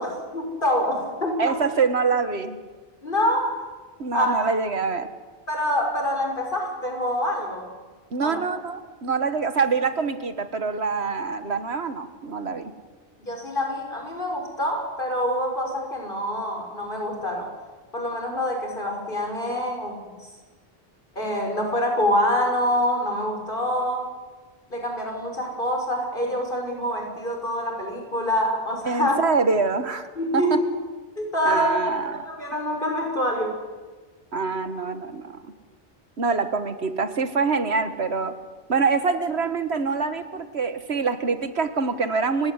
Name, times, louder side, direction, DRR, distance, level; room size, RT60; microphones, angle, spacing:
voice 1, 0.0-1.6 3.0-3.7 4.1-4.5 5.5-7.7 8.2-8.4 13.2-17.5 17.9-20.0 21.2-24.1 24.7-29.2 30.2-30.5 31.2-31.8 32.1-33.6, equal, 55° left, 3 dB, 5.7 m, -26 dB
voice 2, 1.4-2.6 4.0-5.1 8.1-12.7 28.9-30.1 30.3-30.6 31.5-32.3 34.3-35.4 36.2-38.3 38.7-42.5, right 4 dB, 85° right, 10 dB, 1.9 m, -25 dB
30.0 x 16.5 x 9.8 m, 1.4 s
omnidirectional pair, 1.1 m